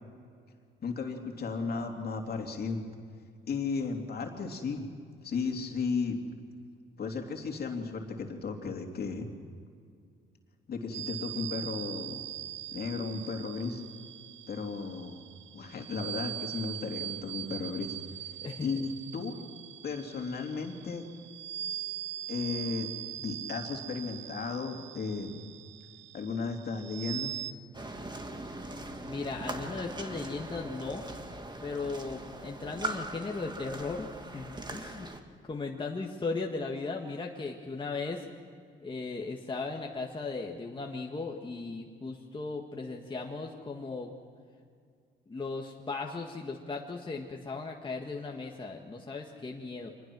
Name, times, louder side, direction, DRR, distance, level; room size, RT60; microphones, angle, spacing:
voice 1, 0.8-2.8 3.5-4.8 5.2-6.2 7.0-9.3 10.7-12.2 12.7-13.8 14.5-15.2 15.5-18.0 18.6-19.3 19.8-21.0 22.3-25.4 26.1-27.4, left 4 dB, 50° left, 2 dB, 2.9 m, -35 dB
sound 1, 10.9-27.5, right 12 dB, 70° right, 0.6 m, -41 dB
sound 2, 27.7-35.2, right 2 dB, 20° right, 1.9 m, -40 dB
voice 2, 29.1-31.0 31.6-34.1 34.3-35.1 35.4-38.3 38.8-44.1 45.3-49.9, left 3 dB, 25° left, 0 dB, 1.7 m, -37 dB
25.0 x 20.5 x 6.2 m, 2.2 s
cardioid pair, 90°, 20 cm